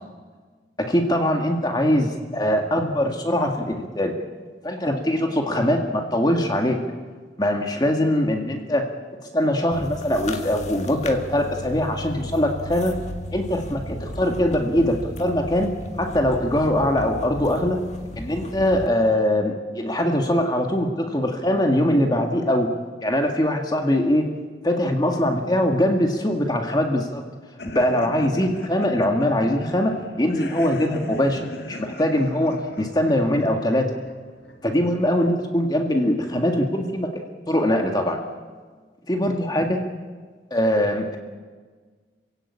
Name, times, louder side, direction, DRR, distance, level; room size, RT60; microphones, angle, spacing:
voice 1, 0.8-4.1 4.6-6.8 7.4-8.9 9.3-13.0 13.3-15.7 16.0-17.8 18.2-22.7 23.0-24.3 24.6-27.2 27.7-33.9 34.6-37.1 37.5-38.2 39.1-39.8 40.5-41.2, left 1 dB, 25° left, 3 dB, 1.9 m, -22 dB
sound 1, 9.7-18.9, left 1 dB, 40° left, 1.7 m, -35 dB
sound 2, 27.6-35.2, left 1 dB, 65° left, 1.7 m, -39 dB
26.5 x 17.0 x 8.6 m, 1.5 s
head